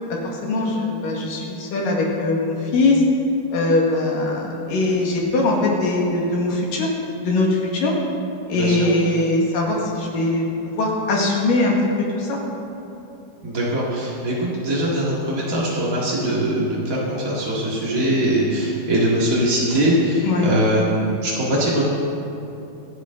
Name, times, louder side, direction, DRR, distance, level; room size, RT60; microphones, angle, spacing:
voice 1, 0.1-3.0 3.5-6.9 7.2-7.9 8.5-11.8 12.1-12.4 20.2-20.5, left 2 dB, 55° left, -2 dB, 3.0 m, -21 dB
voice 2, 8.5-8.9 13.4-21.8, right 1 dB, 55° right, -6 dB, 0.9 m, -21 dB
26.0 x 9.4 x 3.8 m, 2.8 s
omnidirectional pair, 5.3 m